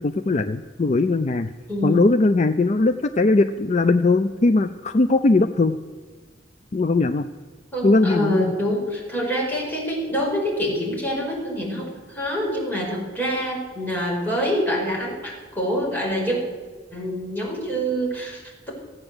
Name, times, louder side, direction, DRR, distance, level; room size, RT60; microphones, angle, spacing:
voice 1, 0.0-1.5 1.8-5.8 6.7-7.2 7.8-8.5, left 3 dB, 40° left, 8 dB, 0.5 m, -19 dB
voice 2, 1.7-2.1 7.7-16.4 16.9-18.7, equal, 10° left, -4 dB, 4.9 m, -26 dB
15.0 x 8.9 x 7.9 m, 1.4 s
head